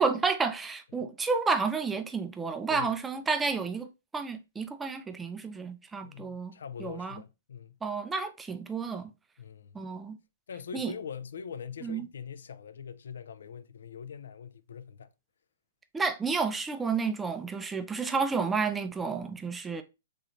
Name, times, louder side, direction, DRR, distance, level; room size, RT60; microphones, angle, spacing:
voice 1, 0.0-7.2 7.8-9.1 9.7-10.2 10.7-10.9 11.8-12.1 15.9-19.8, right 4 dB, 10° right, 0.3 m, -31 dB
voice 2, 6.0-7.8 9.4-9.8 10.5-15.1, left 7 dB, 80° left, 0.3 m, -43 dB
3.1 x 2.9 x 2.4 m
hypercardioid pair, 150°, 0 cm